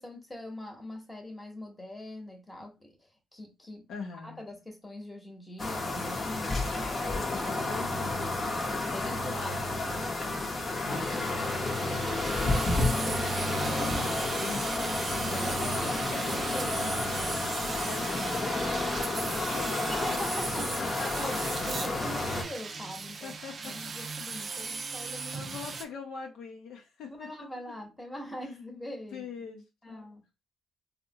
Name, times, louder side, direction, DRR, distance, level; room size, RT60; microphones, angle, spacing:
voice 1, 0.0-3.9 4.1-7.3 8.7-11.9 12.3-14.1 15.0-17.3 19.9-25.5 27.1-29.3 29.8-30.2, left 1 dB, 15° left, 1.0 m, -43 dB
voice 2, 3.9-4.4 7.1-8.5 10.2-10.6 14.3-16.4 17.7-20.2 20.6-20.9 23.2-23.9 24.3-24.5 25.3-27.3 29.1-30.0, left 5 dB, 80° left, 0.7 m, -43 dB
sound 1, 5.6-22.4, left 2 dB, 35° left, 0.8 m, -31 dB
sound 2, 10.9-25.8, right 4 dB, 45° right, 0.4 m, -38 dB
3.4 x 2.1 x 2.7 m
cardioid pair, 90°, 0 cm